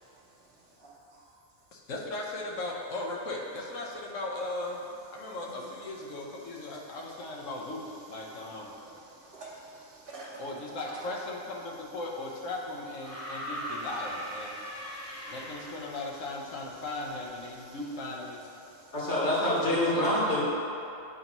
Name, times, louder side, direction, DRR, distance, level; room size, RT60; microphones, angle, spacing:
voice 1, 1.7-4.8 5.1-8.7 10.4-14.6 15.3-18.4 19.7-20.4, left 2 dB, 90° left, -1 dB, 1.2 m, -37 dB
voice 2, 8.9-10.6 14.7-15.3 17.6-17.7 18.8-18.9, right 2 dB, 55° right, -10 dB, 1.1 m, -48 dB
sound 1, 13.0-16.1 17.3-17.4, equal, 15° left, 0.6 m, -39 dB
voice 3, 18.9-20.4, left 1 dB, 65° left, -7 dB, 1.8 m, -26 dB
7.8 x 3.0 x 5.3 m, 2.7 s
omnidirectional pair, 1.3 m